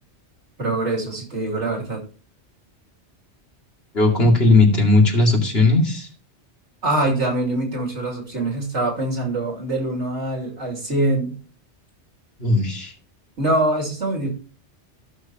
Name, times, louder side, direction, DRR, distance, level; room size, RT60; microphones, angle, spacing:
voice 1, 0.6-2.0 6.8-11.4 13.4-14.3, right 2 dB, 85° right, 0 dB, 3.0 m, -24 dB
voice 2, 3.9-6.1 12.4-12.9, left 2 dB, 60° left, -1 dB, 2.7 m, -17 dB
15.0 x 6.4 x 2.9 m, 0.40 s
omnidirectional pair, 1.2 m